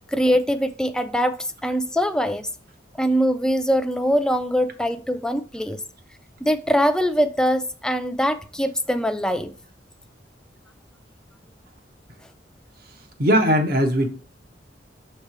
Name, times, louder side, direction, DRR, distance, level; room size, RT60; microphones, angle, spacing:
voice 1, 0.1-2.5 3.0-5.8 6.4-9.5, equal, 5° left, 0.4 m, -22 dB
voice 2, 13.2-14.1, equal, 55° right, 1.0 m, -19 dB
6.5 x 3.4 x 4.4 m
head